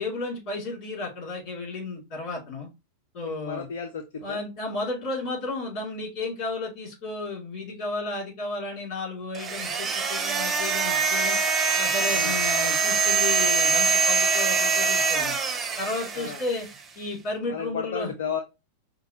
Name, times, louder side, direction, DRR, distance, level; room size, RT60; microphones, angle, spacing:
voice 1, 0.0-2.7 3.1-3.7 4.2-11.4 11.8-15.3 15.8-16.7 17.0-18.1, left 2 dB, 40° left, -2 dB, 2.4 m, -33 dB
voice 2, 3.2-4.4 12.1-12.4 16.1-16.4 17.5-18.4, left 6 dB, 60° left, 5 dB, 0.5 m, -33 dB
sound 1, 9.3-16.7, right 4 dB, 20° right, 0.5 m, -24 dB
5.2 x 2.2 x 2.8 m, 0.26 s
figure-of-eight pair, 90°, 0 cm